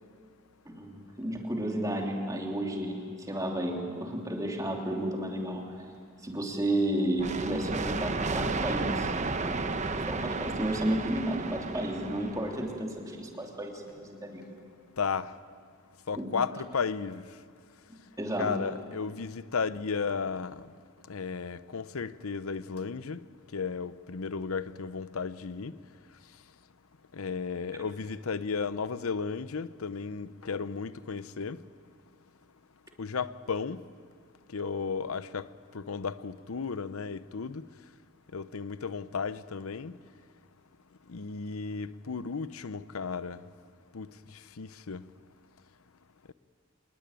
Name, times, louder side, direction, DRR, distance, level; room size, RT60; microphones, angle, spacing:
voice 1, 0.6-5.8 6.2-9.1 9.4-9.7 10.1-14.6 16.2-16.3 17.9-18.6, right 1 dB, 15° right, 3.1 m, -32 dB
sound 1, 7.2-12.8, right 3 dB, 35° right, 0.9 m, -33 dB
voice 2, 15.0-15.3 16.1-17.2 18.4-20.6 21.1-23.2 23.5-25.7 27.1-31.6 33.0-33.8 34.5-35.5 35.7-37.7 38.3-40.0 41.1-43.4 43.9-44.1 44.6-45.0, left 5 dB, 90° left, 0.7 m, -34 dB
26.5 x 20.5 x 9.0 m
head